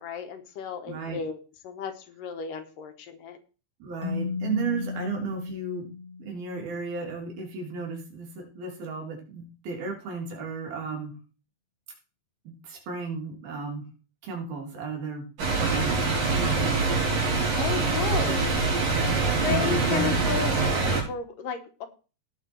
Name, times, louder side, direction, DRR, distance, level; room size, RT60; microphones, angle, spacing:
voice 1, 0.0-1.4 1.6-3.4 17.6-18.7 19.4-21.9, left 7 dB, 70° left, 7 dB, 2.8 m, -34 dB
voice 2, 0.9-1.2 3.8-5.9 6.2-11.1 12.4-13.8 14.2-15.2 15.5-16.9 19.4-20.2, right 4 dB, 85° right, 0 dB, 5.2 m, -34 dB
Keyboard (musical), 4.0-6.8, left 5 dB, 35° left, 1.6 m, -34 dB
sound 1, 15.4-21.0, right 3 dB, 65° right, 6.0 m, -24 dB
18.0 x 6.0 x 4.6 m, 0.35 s
omnidirectional pair, 4.2 m